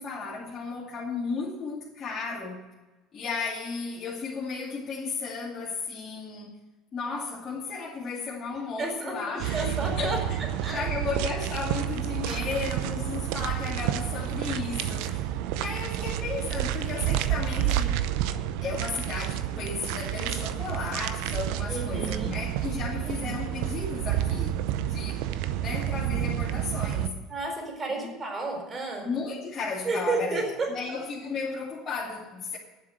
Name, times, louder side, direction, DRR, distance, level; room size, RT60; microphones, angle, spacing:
voice 1, 0.0-2.7 3.1-6.5 6.9-10.1 10.7-15.2 15.5-18.1 18.6-25.2 25.6-27.2 27.9-28.1 29.0-30.4 30.7-32.6, left 4 dB, 40° left, 2.5 m, -34 dB
voice 2, 8.8-10.2 10.6-10.8 16.0-16.1 21.7-22.3 23.1-23.3 27.3-29.1 29.8-30.7, right 3 dB, 30° right, 4.4 m, -32 dB
sound 1, 9.4-27.1, right 11 dB, 70° right, 0.7 m, -30 dB
9.9 x 7.4 x 9.0 m
hypercardioid pair, 75°, 0 cm